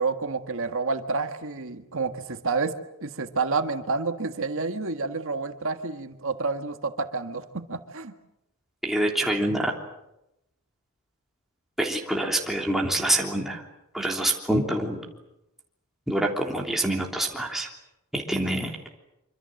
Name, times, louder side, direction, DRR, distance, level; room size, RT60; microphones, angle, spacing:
voice 1, 0.0-8.2, right 4 dB, 65° right, 7 dB, 1.7 m, -29 dB
voice 2, 8.8-9.7 11.8-13.6 13.9-15.0 16.1-17.7 18.1-18.8, right 1 dB, ahead, -1 dB, 3.3 m, -26 dB
26.0 x 25.5 x 7.8 m, 0.87 s
head